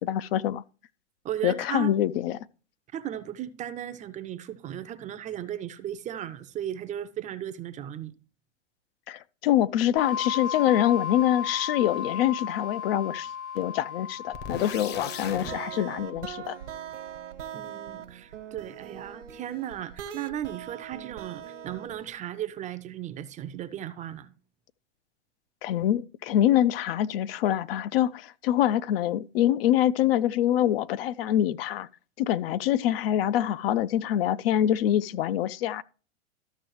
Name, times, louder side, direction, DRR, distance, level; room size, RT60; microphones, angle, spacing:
voice 1, 0.0-0.6 1.4-2.4 9.1-16.6 25.6-31.9 32.2-35.8, left 11 dB, 55° left, 0.5 m, -25 dB
voice 2, 1.2-1.9 2.9-8.1 17.5-24.3, right 11 dB, 20° right, 0.5 m, -36 dB
sound 1, 10.0-16.5, left 8 dB, 70° left, 2.3 m, -35 dB
sound 2, 14.3-15.5, left 7 dB, 30° left, 0.8 m, -38 dB
sound 3, 14.5-22.1, right 9 dB, 80° right, 1.2 m, -41 dB
13.0 x 6.1 x 3.0 m
hypercardioid pair, 115°, 36 cm